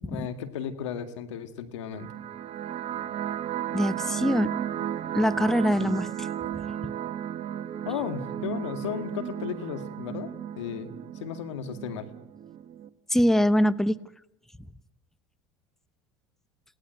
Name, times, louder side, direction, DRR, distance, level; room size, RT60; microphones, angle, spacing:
voice 1, 0.0-2.1 5.8-5.9 7.9-10.3 10.6-10.9 11.2-12.1, left 8 dB, 85° left, 8 dB, 2.0 m, -34 dB
sound 1, 1.9-12.9, right 10 dB, 45° right, 1.3 m, -34 dB
voice 2, 3.7-4.5 5.1-6.1 6.6-6.9 13.1-14.0, equal, 5° left, 15 dB, 0.9 m, -23 dB
27.5 x 18.0 x 7.9 m, 0.82 s
hypercardioid pair, 90°, 15 cm